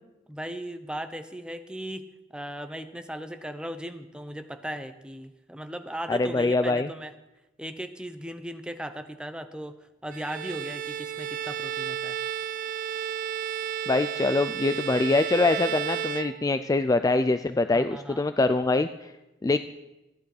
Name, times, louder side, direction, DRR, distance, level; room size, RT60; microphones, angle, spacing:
voice 1, 0.3-2.0 2.3-7.1 7.6-9.8 10.0-12.2 17.7-18.2, equal, 5° right, 8 dB, 0.8 m, -37 dB
voice 2, 6.1-6.9 13.9-19.1 19.4-19.6, left 3 dB, 20° left, 11 dB, 0.3 m, -24 dB
Bowed string instrument, 10.1-16.9, right 9 dB, 50° right, 0.4 m, -33 dB
14.5 x 10.5 x 4.9 m, 0.99 s
head